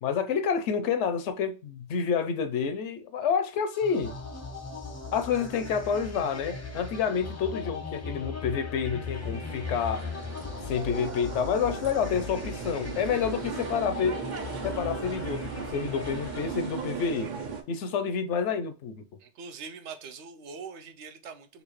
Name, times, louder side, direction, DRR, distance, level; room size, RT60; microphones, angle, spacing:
voice 1, 0.0-4.2 5.1-10.1 10.7-14.2 14.6-17.3 17.7-19.0, left 6 dB, 85° left, 0.9 m, -29 dB
sound 1, 3.7-17.4, left 4 dB, 20° left, 0.5 m, -39 dB
sound 2, 9.0-17.6, right 6 dB, 50° right, 0.6 m, -38 dB
voice 2, 19.2-21.6, right 5 dB, 85° right, 0.9 m, -43 dB
4.1 x 2.4 x 3.1 m
omnidirectional pair, 1.2 m